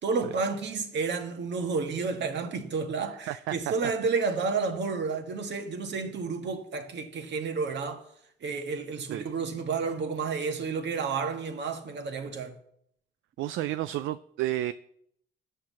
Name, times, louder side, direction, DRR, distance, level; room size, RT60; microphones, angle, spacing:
voice 1, 0.0-8.0 8.4-12.5, right 4 dB, 60° right, 1.8 m, -31 dB
voice 2, 3.3-3.7 9.1-9.3 13.4-14.7, right 14 dB, 80° right, 0.4 m, -31 dB
10.0 x 5.9 x 7.4 m
cardioid pair, 90°, 20 cm